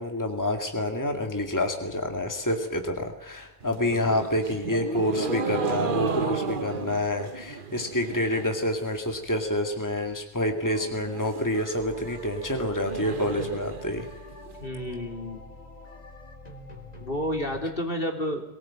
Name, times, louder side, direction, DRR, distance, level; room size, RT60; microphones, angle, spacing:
voice 1, 0.0-14.1, left 1 dB, 15° left, 4 dB, 2.2 m, -28 dB
sound 1, 3.6-8.6 8.9-9.5 9.8-9.9 10.1-10.2 10.5-14.5, right 5 dB, 55° right, 1.2 m, -34 dB
voice 2, 3.9-4.3 14.6-15.4 17.0-18.4, equal, 60° left, 3 dB, 3.4 m, -31 dB
sound 2, 11.8-17.6, left 2 dB, 40° left, 3.4 m, -45 dB
23.0 x 18.5 x 8.9 m, 0.94 s
omnidirectional pair, 1.1 m